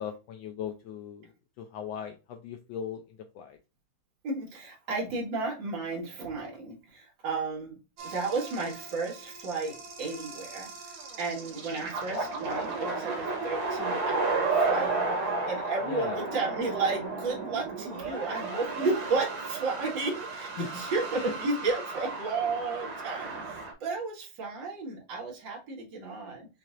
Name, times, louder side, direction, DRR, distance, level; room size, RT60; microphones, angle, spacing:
voice 1, 0.0-3.6 15.8-16.2 20.6-20.8 21.1-21.3, left 7 dB, 75° left, 4 dB, 1.2 m, -38 dB
voice 2, 4.2-7.8 8.0-26.5, right 3 dB, 60° right, -3 dB, 2.2 m, -33 dB
sound 1, 8.0-23.7, right 3 dB, 80° right, 2.1 m, -33 dB
5.7 x 2.7 x 2.4 m, 0.30 s
omnidirectional pair, 2.4 m